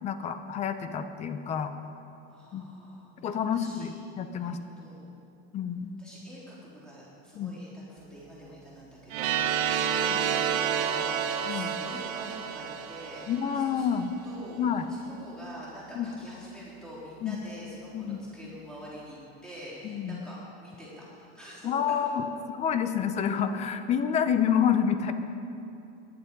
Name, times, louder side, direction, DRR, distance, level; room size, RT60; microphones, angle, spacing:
voice 1, 0.0-1.7 2.5-2.6 3.2-4.6 5.5-5.9 7.4-7.6 11.5-11.7 13.3-14.1 14.6-14.9 16.0-16.1 17.2-17.4 17.9-18.2 19.8-20.2 21.6-22.2 22.5-25.1, left 8 dB, 20° left, 10 dB, 0.5 m, -28 dB
voice 2, 2.3-3.1 3.5-4.0 4.4-5.1 6.0-13.2 13.5-14.6 14.9-21.7, equal, ahead, -8 dB, 3.7 m, -46 dB
sound 1, 9.1-13.9, right 8 dB, 45° right, 0.9 m, -29 dB
18.0 x 10.5 x 5.2 m, 2.7 s
cardioid pair, 175°, 32 cm